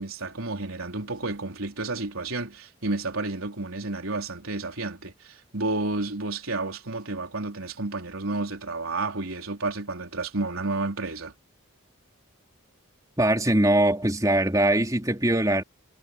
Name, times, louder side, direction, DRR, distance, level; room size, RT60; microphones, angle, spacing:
voice 1, 0.0-11.3, right 2 dB, 90° right, 4.0 m, -31 dB
voice 2, 13.2-15.6, right 1 dB, 15° right, 3.7 m, -22 dB
head